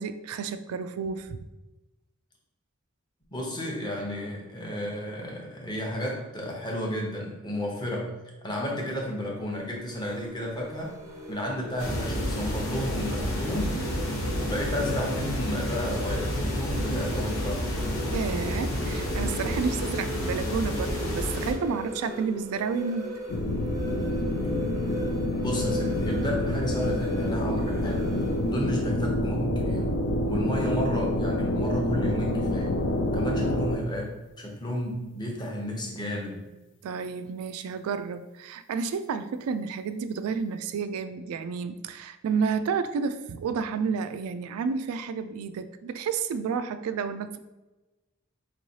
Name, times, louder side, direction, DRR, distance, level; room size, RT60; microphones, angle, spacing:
voice 1, 0.0-1.4 18.1-23.1 36.8-47.4, right 5 dB, 90° right, 11 dB, 0.3 m, -31 dB
voice 2, 3.3-8.1 8.4-11.0 11.3-13.7 14.3-17.7 25.4-28.1 28.5-29.9 30.3-32.8 33.0-36.4, equal, 20° left, -1 dB, 0.7 m, -32 dB
sound 1, 8.9-28.6, left 1 dB, 15° right, 0.6 m, -39 dB
sound 2, 11.8-21.5, equal, 80° left, 1.0 m, -30 dB
sound 3, 23.3-33.8, left 1 dB, 55° left, 0.4 m, -27 dB
4.5 x 3.1 x 2.7 m, 1.1 s
head